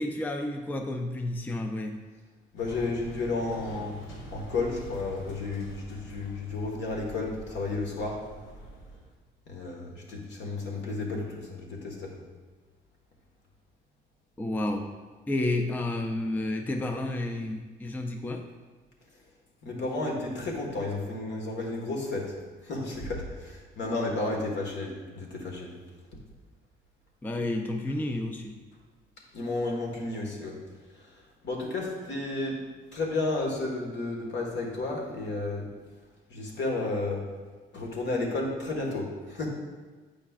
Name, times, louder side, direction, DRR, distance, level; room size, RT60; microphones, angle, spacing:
voice 1, 0.0-2.0 14.4-15.0 15.3-18.5 27.2-28.6, left 1 dB, 10° left, 4 dB, 0.4 m, -31 dB
voice 2, 2.5-4.0 4.3-8.2 9.5-12.1 19.6-22.3 22.6-25.7 29.3-30.6 30.9-32.6 32.9-35.7 36.3-37.2 37.7-39.5, left 2 dB, 65° left, 0 dB, 1.4 m, -32 dB
sound 1, 2.6-9.1, right 1 dB, 90° left, 1.0 m, -45 dB
8.1 x 5.2 x 2.4 m, 1.4 s
cardioid pair, 90°, 20 cm